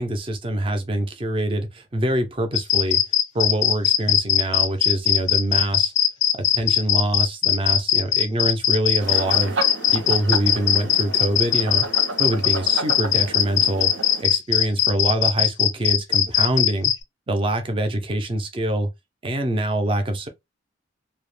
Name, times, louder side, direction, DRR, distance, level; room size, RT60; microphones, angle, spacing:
voice 1, 0.0-3.0 3.3-5.9 6.3-9.6 9.9-11.9 12.2-16.9 17.3-18.9 19.2-20.3, right 1 dB, 30° right, 0.5 m, -25 dB
sound 1, 2.5-17.0, left 10 dB, 70° left, 0.4 m, -19 dB
sound 2, 9.0-14.2, right 3 dB, 80° right, 0.6 m, -32 dB
2.2 x 2.1 x 3.1 m
head